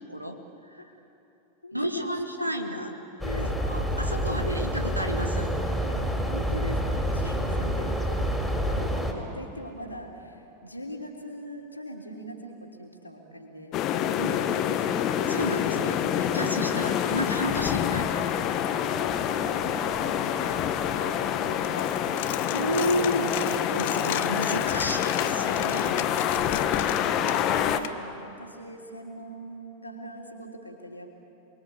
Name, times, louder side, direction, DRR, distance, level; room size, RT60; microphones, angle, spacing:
voice 1, 0.1-0.8 1.7-2.9 3.6-5.5 14.2-14.4 15.3-18.3 22.5-26.0, equal, 90° right, 4 dB, 2.2 m, -31 dB
voice 2, 1.6-2.9 3.2-3.6 5.9-6.0 6.3-8.2 8.5-13.9 15.6-15.8 16.5-16.9 19.0-20.3 20.8-22.1 23.9-24.2 26.5-31.1, equal, 85° left, 1 dB, 3.4 m, -42 dB
sound 1, 3.2-9.1, equal, 5° left, 3.9 m, -28 dB
sound 2, 13.7-27.8, left 9 dB, 35° left, 1.4 m, -27 dB
Coin (dropping), 21.6-27.9, left 14 dB, 50° left, 0.8 m, -37 dB
28.5 x 22.0 x 8.6 m, 2.9 s
figure-of-eight pair, 90°, 0 cm